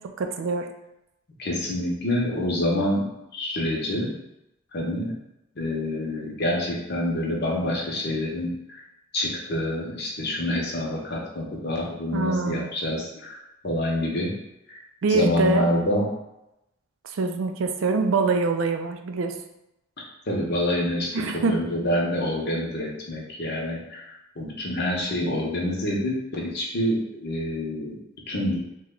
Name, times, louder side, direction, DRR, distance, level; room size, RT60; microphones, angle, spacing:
voice 1, 0.2-0.7 12.1-12.7 15.0-15.7 17.0-19.3 21.1-21.6, right 3 dB, 70° right, 6 dB, 0.4 m, -24 dB
voice 2, 1.4-4.1 4.7-5.2 5.6-8.8 9.1-13.4 13.6-14.3 14.7-14.8 15.1-16.1 20.3-21.1 21.5-24.0 24.4-28.0 28.3-28.6, left 1 dB, 55° left, -2 dB, 0.8 m, -27 dB
3.1 x 2.2 x 3.7 m, 0.88 s
head